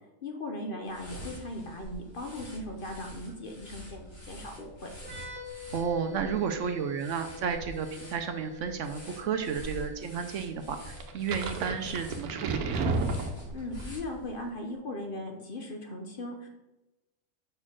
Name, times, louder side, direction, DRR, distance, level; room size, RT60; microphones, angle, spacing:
voice 1, 0.2-4.9 13.5-16.5, left 1 dB, 45° left, 3 dB, 0.9 m, -38 dB
sound 1, 0.8-14.5, equal, 75° left, 3.2 m, -46 dB
sound 2, 5.0-12.5, left 2 dB, 40° right, 1.7 m, -48 dB
voice 2, 5.7-12.8, right 6 dB, 65° right, 7 dB, 0.8 m, -32 dB
sound 3, 11.0-13.9, right 3 dB, 90° right, 1.2 m, -32 dB
5.4 x 4.3 x 6.0 m, 1.0 s
omnidirectional pair, 1.5 m